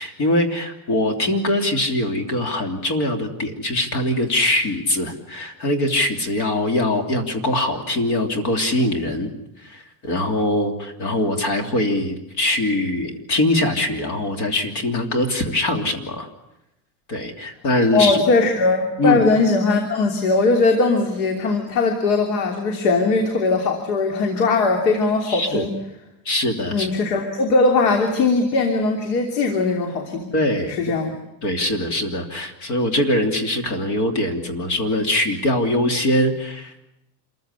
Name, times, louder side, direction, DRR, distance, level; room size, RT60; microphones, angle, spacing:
voice 1, 0.0-9.3 9.6-16.3 17.1-18.2 19.0-19.2 25.3-25.6 26.2-26.9 30.3-31.0 31.4-36.8, left 1 dB, 35° left, 6 dB, 3.1 m, -22 dB
voice 2, 17.9-25.7 26.7-30.3 30.7-31.1, left 3 dB, 80° left, 4 dB, 3.3 m, -20 dB
27.0 x 15.0 x 9.8 m, 0.88 s
cardioid pair, 165°, 48 cm